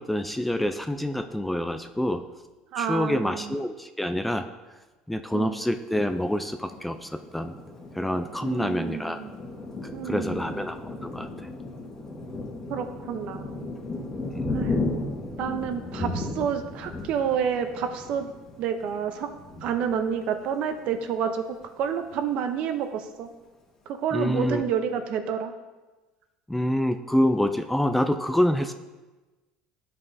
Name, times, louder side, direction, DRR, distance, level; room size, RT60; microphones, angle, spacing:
voice 1, 0.0-2.2 2.8-4.5 5.1-7.6 7.9-9.2 9.8-11.5 14.3-14.6 24.1-24.6 26.5-28.7, left 1 dB, 5° left, 7 dB, 0.4 m, -27 dB
voice 2, 2.7-3.5 5.3-5.6 8.4-9.3 9.9-10.6 12.7-13.8 14.5-14.8 15.4-18.3 18.6-19.3 19.6-21.5 21.8-23.3 24.0-25.5, right 7 dB, 60° right, 7 dB, 0.8 m, -29 dB
Thunder, 6.7-21.0 21.5-21.6 21.9-22.6, left 2 dB, 25° left, 1.4 m, -35 dB
12.5 x 5.4 x 2.7 m, 1.2 s
cardioid pair, 125°, 2 cm